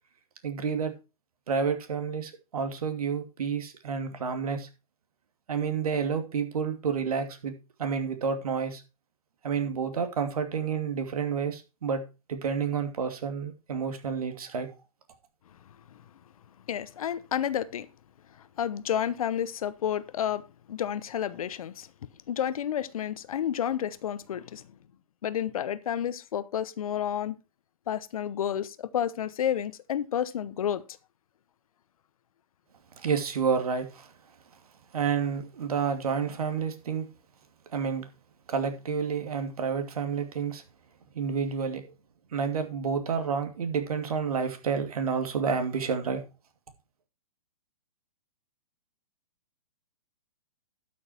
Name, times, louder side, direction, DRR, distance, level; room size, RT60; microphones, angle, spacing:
voice 1, 0.4-0.9 1.5-4.7 5.5-8.8 9.4-14.7 33.0-34.1 34.9-37.1 37.7-38.1 38.5-40.6 41.1-41.8 42.3-46.2, right 6 dB, 70° right, 2.7 m, -30 dB
voice 2, 16.7-17.9 18.4-21.9 22.3-24.6 25.2-27.4 27.9-30.8, left 9 dB, 65° left, 1.0 m, -30 dB
12.0 x 6.5 x 4.4 m
hypercardioid pair, 130°, 20 cm